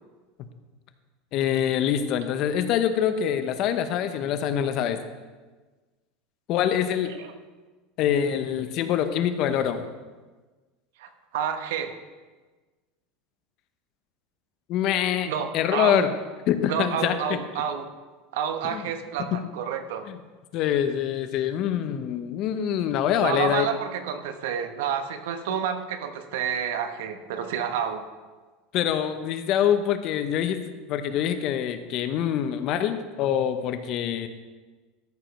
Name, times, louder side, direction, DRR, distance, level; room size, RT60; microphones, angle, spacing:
voice 1, 1.3-5.0 6.5-7.1 8.0-9.9 14.7-16.1 16.5-17.4 18.6-18.9 19.3-19.4 20.1-20.2 20.5-23.7 28.7-30.6 30.9-34.3, left 9 dB, 45° left, 9 dB, 0.8 m, -25 dB
voice 2, 11.0-11.9 15.2-16.1 16.7-17.9 18.3-20.1 23.2-28.0, right 8 dB, 85° right, 8 dB, 1.0 m, -29 dB
13.0 x 5.1 x 5.8 m, 1.3 s
supercardioid pair, 155°, 0 cm